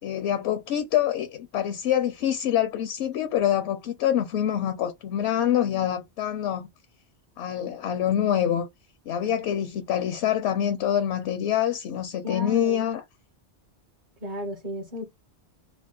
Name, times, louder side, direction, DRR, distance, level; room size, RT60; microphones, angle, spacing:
voice 1, 0.0-6.7 7.4-8.7 9.1-13.0, left 10 dB, 80° left, 0.8 m, -25 dB
voice 2, 12.2-12.8 14.2-15.0, left 1 dB, 50° right, 1.0 m, -34 dB
3.4 x 2.3 x 3.7 m
omnidirectional pair, 1.1 m